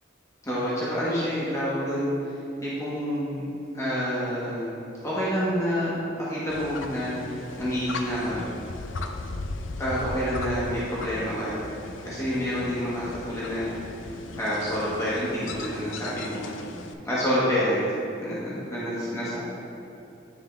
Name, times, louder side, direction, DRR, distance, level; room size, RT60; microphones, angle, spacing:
voice 1, 0.4-3.4 3.7-7.2 7.6-8.4 9.8-11.6 12.0-14.0 14.3-16.5 17.0-17.8 18.2-19.4, equal, 15° left, -9 dB, 1.3 m, -28 dB
sound 1, 6.5-16.9, left 3 dB, 75° left, 0.5 m, -37 dB
9.6 x 3.9 x 3.4 m, 2.9 s
head